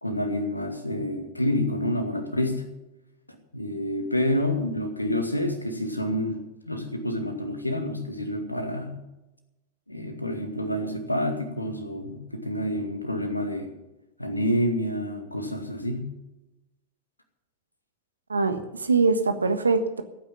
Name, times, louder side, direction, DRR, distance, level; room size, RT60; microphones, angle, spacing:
voice 1, 0.0-2.7 3.5-6.4 6.7-9.0 9.9-13.7 14.2-16.1, left 1 dB, 85° left, 6 dB, 2.1 m, -28 dB
voice 2, 18.3-20.0, right 4 dB, 75° right, 9 dB, 1.4 m, -23 dB
15.5 x 9.4 x 7.5 m, 0.98 s
figure-of-eight pair, 90°, 0 cm